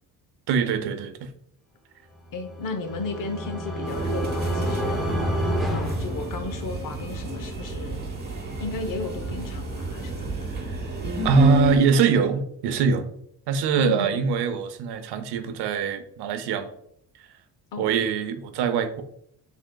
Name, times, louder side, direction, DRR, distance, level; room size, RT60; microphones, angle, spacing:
voice 1, 0.5-1.3 11.2-13.1 13.5-16.7 17.8-19.0, right 5 dB, 80° right, 9 dB, 0.7 m, -23 dB
voice 2, 2.3-5.0 5.7-8.0 8.6-10.4 13.8-14.2 17.7-17.9, left 3 dB, 55° left, 6 dB, 0.8 m, -34 dB
sound 1, 2.3-6.9, equal, ahead, 0.6 m, -28 dB
sound 2, 3.9-11.8, right 3 dB, 25° right, 1.0 m, -31 dB
6.2 x 3.5 x 2.2 m, 0.70 s
cardioid pair, 140°, 40 cm